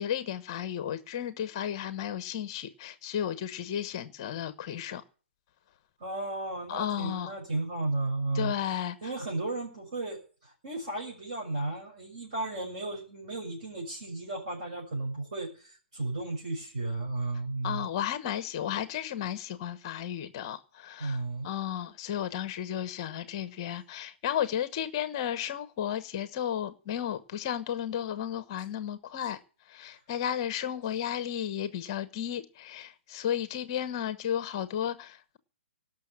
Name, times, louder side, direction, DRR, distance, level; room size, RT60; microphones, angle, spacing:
voice 1, 0.0-5.0 6.7-7.3 8.3-9.0 17.6-29.4 29.7-35.4, left 9 dB, 20° left, 1.1 m, -33 dB
voice 2, 6.0-8.5 9.0-17.9 21.0-21.5, right 2 dB, 40° right, 6.3 m, -34 dB
18.0 x 6.5 x 8.8 m
hypercardioid pair, 175°, 7 cm